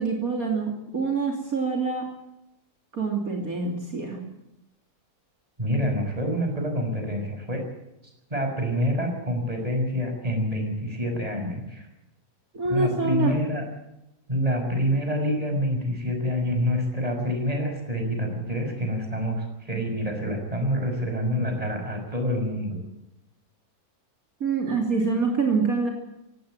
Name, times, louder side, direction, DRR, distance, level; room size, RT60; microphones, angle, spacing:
voice 1, 0.0-2.0 2.9-4.2 12.5-13.4 19.7-19.8 24.4-25.9, right 4 dB, 60° right, 1 dB, 3.5 m, -26 dB
voice 2, 5.6-7.6 8.3-11.9 12.6-13.7 14.3-22.8, equal, 20° right, 3 dB, 5.8 m, -27 dB
17.5 x 17.0 x 9.0 m, 0.89 s
omnidirectional pair, 1.7 m